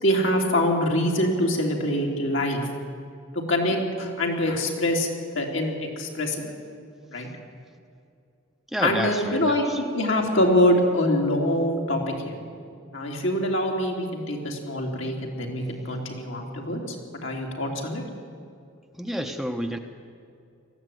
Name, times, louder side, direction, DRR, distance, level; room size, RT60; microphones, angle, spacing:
voice 1, 0.0-2.7 3.3-5.1 5.4-6.5 7.1-7.3 8.8-12.4 12.9-17.0 17.2-18.0, left 1 dB, 70° left, 0 dB, 3.4 m, -24 dB
voice 2, 8.7-9.8 19.0-19.8, equal, ahead, 4 dB, 0.9 m, -30 dB
19.5 x 14.5 x 9.2 m, 2.4 s
head